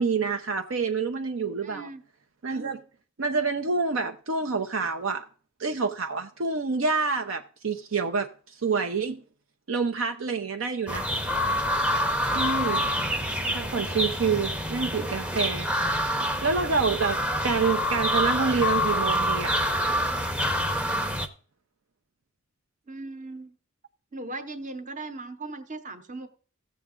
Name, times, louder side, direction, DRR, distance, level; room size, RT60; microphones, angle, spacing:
voice 1, 0.0-1.9 2.4-2.8 3.2-5.2 5.6-8.3 8.6-9.2 9.7-11.1 12.3-12.8 13.5-15.7 16.4-19.5, right 4 dB, 70° right, 0.7 m, -27 dB
voice 2, 1.6-2.0 22.9-23.5 24.1-26.3, right 2 dB, 40° right, 1.0 m, -38 dB
sound 1, 10.9-21.3, equal, 5° right, 0.7 m, -27 dB
16.0 x 7.0 x 3.7 m
head